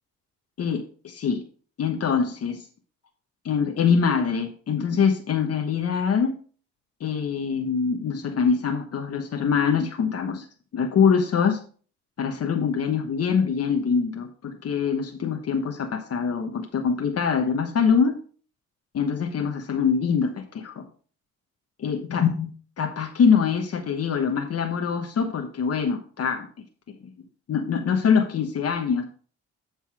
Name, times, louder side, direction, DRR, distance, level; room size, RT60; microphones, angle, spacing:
voice 1, 0.6-1.4 1.8-2.6 3.4-6.3 7.0-10.4 10.7-11.6 12.2-18.2 18.9-20.8 21.8-22.5 22.8-26.5 27.5-29.0, left 6 dB, 55° left, 4 dB, 1.2 m, -24 dB
11.5 x 4.1 x 4.8 m, 0.41 s
cardioid pair, 90°, 30 cm